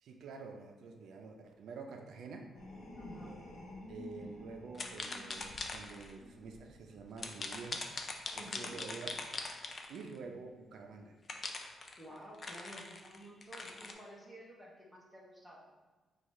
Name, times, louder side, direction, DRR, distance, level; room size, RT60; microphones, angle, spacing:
voice 1, 0.0-2.5 3.9-7.9 8.3-9.2 9.9-11.2, right 4 dB, 70° right, 3 dB, 0.4 m, -48 dB
sound 1, 2.5-7.7 8.4-8.7, left 1 dB, 60° left, 0.9 m, -51 dB
voice 2, 3.0-3.4 8.3-8.8 12.0-15.6, equal, 5° left, -4 dB, 0.8 m, -52 dB
sound 2, 4.7-6.1 7.2-10.2 11.3-13.9, left 3 dB, 30° left, 0.4 m, -42 dB
4.8 x 2.3 x 4.1 m, 1.3 s
cardioid pair, 165°, 0 cm